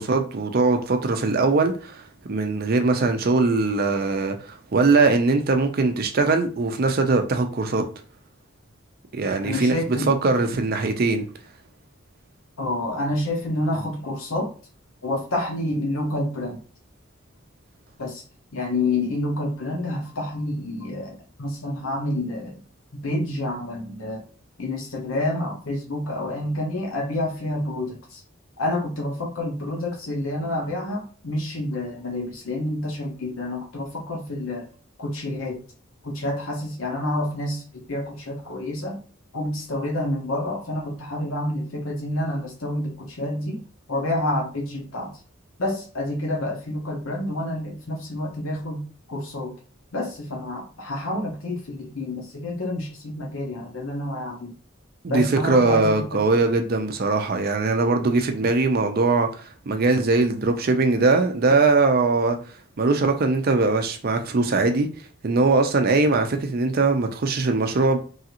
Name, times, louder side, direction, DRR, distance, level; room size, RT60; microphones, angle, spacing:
voice 1, 0.0-2.0 2.3-7.9 9.1-9.8 10.1-11.3 55.0-62.4 62.8-64.9 65.2-68.0, right 3 dB, 45° right, 0.5 m, -21 dB
voice 2, 9.4-10.1 12.6-14.5 15.0-16.6 18.0-18.2 18.5-22.6 23.0-24.2 24.6-28.2 28.6-34.7 35.0-35.6 36.0-39.0 39.3-43.6 43.9-45.2 45.6-49.5 49.9-54.5 55.1-56.4, left 1 dB, 80° left, 0.8 m, -28 dB
3.1 x 2.5 x 2.8 m
head